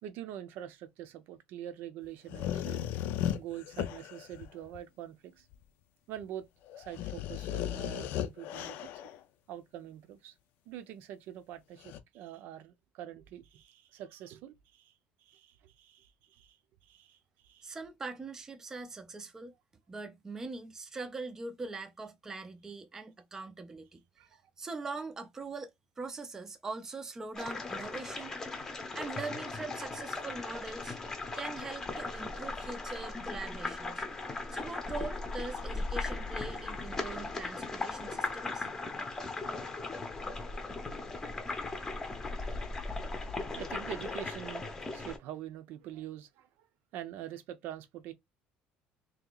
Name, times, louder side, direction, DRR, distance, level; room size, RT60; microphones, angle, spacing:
voice 1, 0.0-2.9 3.4-5.5 6.1-6.5 6.8-8.9 9.5-10.3 10.7-14.9 15.2-16.6 16.8-17.2 17.4-17.8 24.2-24.4 28.1-28.2 32.0-32.1 43.6-46.7 46.9-48.1, right 11 dB, 60° right, 0.6 m, -45 dB
sound 1, 2.3-4.8 5.5-5.6 6.2-6.3 6.7-9.2 11.8-12.0, left 11 dB, 60° left, 0.5 m, -36 dB
voice 2, 17.6-19.5 19.9-24.0 24.6-28.5 28.9-31.0 31.4-34.0 34.5-38.7, right 3 dB, 15° right, 0.5 m, -42 dB
sound 2, 27.3-45.2, left 3 dB, 15° left, 0.8 m, -38 dB
3.3 x 2.9 x 3.8 m
cardioid pair, 170°, 4 cm